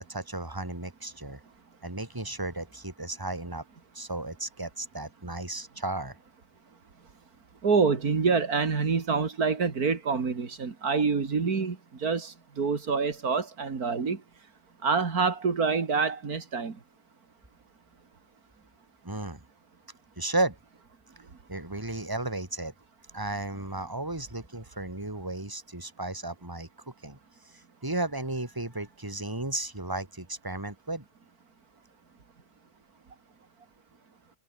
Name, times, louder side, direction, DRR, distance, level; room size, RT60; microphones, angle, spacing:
voice 1, 0.1-1.4 1.8-3.6 3.9-6.2 19.0-19.4 20.2-20.6 21.5-22.7 23.1-27.2 27.4-31.0, right 2 dB, 15° right, 3.1 m, -34 dB
voice 2, 7.6-14.2 14.8-16.8, right 5 dB, 85° right, 2.8 m, -26 dB
omnidirectional pair, 1.5 m